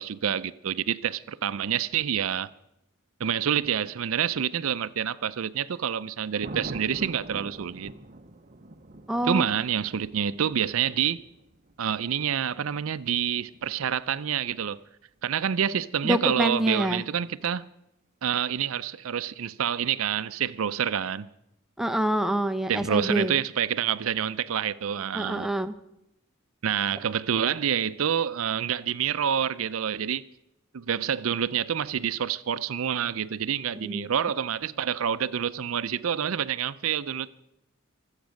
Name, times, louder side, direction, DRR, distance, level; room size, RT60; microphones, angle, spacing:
voice 1, 0.0-2.5 3.2-7.9 9.3-11.2 11.8-14.8 15.2-17.7 18.2-21.3 22.7-25.5 26.6-30.2 30.7-37.3, right 8 dB, 75° right, 0.5 m, -27 dB
Thunder, 6.4-14.5 17.2-17.5, right 2 dB, 35° right, 0.8 m, -44 dB
voice 2, 9.1-9.4 16.0-17.0 21.8-23.4 25.1-25.7 33.8-34.1, right 1 dB, ahead, 0.7 m, -26 dB
24.5 x 8.2 x 6.4 m
head